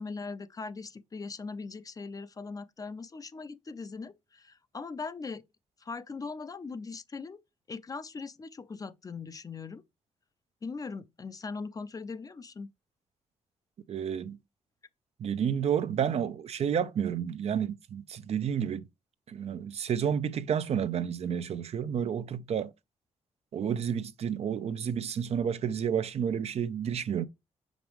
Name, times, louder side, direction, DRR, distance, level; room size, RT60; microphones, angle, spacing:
voice 1, 0.0-5.4 5.8-7.4 7.7-9.8 10.6-12.7, left 4 dB, 30° left, 0.5 m, -40 dB
voice 2, 13.9-14.4 15.2-18.9 19.3-22.7 23.5-27.2, right 8 dB, 60° right, 0.6 m, -30 dB
6.0 x 5.2 x 3.0 m
cardioid pair, 110°, 12 cm